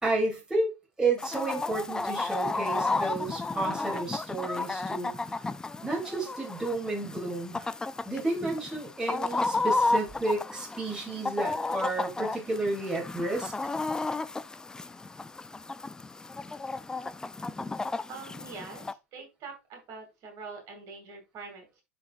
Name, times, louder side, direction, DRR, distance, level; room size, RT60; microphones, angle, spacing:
voice 1, 0.0-5.4 5.8-7.7 8.1-13.5, right 2 dB, 10° right, 2.7 m, -31 dB
Chicken rooster, 1.2-18.9, left 3 dB, 10° left, 0.3 m, -33 dB
voice 2, 18.1-21.8, right 4 dB, 45° right, 2.5 m, -44 dB
12.0 x 4.1 x 2.4 m
hypercardioid pair, 110°, 8 cm